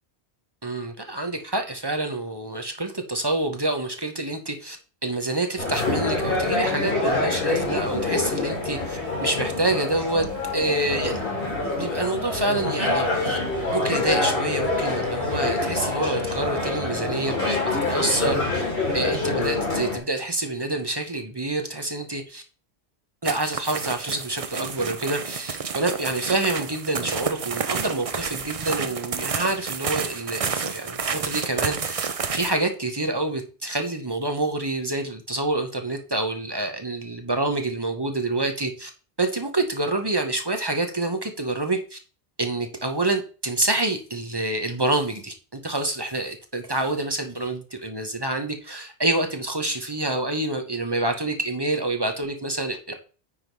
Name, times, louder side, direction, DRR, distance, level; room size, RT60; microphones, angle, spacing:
voice 1, 0.6-4.8 5.0-10.3 10.5-11.3 11.8-13.4 13.7-18.6 18.9-22.4 23.2-38.9 39.2-42.0 42.4-52.8, right 2 dB, 25° right, 4 dB, 1.0 m, -27 dB
sound 1, 5.6-20.0, left 2 dB, 55° left, 3.7 m, -26 dB
sound 2, 23.2-32.5, right 6 dB, 40° right, 0.6 m, -30 dB
9.6 x 3.7 x 4.7 m, 0.36 s
omnidirectional pair, 1.1 m